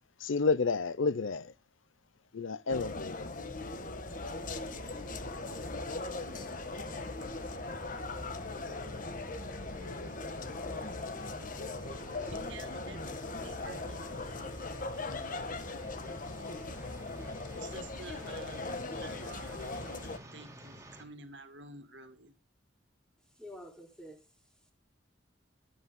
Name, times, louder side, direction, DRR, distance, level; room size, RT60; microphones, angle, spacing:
voice 1, 0.2-1.5 2.3-3.3, left 4 dB, 80° left, 0.6 m, -30 dB
sound 1, 2.7-20.2, left 3 dB, 45° left, 1.5 m, -39 dB
sound 2, 4.1-21.0, right 1 dB, 15° right, 3.3 m, -50 dB
voice 2, 12.3-14.1 17.6-18.6 19.0-22.4, right 3 dB, 60° right, 2.2 m, -50 dB
voice 3, 23.2-24.7, left 1 dB, 5° left, 3.9 m, -50 dB
22.5 x 8.6 x 2.2 m
head